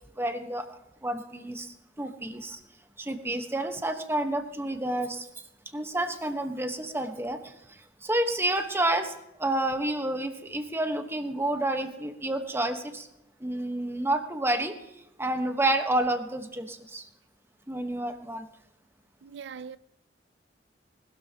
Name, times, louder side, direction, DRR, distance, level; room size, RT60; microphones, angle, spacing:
voice 1, 0.2-0.7 1.0-2.6 3.0-5.2 5.7-7.4 8.0-9.1 9.4-13.1 13.4-14.7 15.2-17.0 17.7-18.5, right 1 dB, 15° right, 1.2 m, -29 dB
voice 2, 19.2-19.8, right 6 dB, 90° right, 0.4 m, -41 dB
20.0 x 12.5 x 2.9 m
head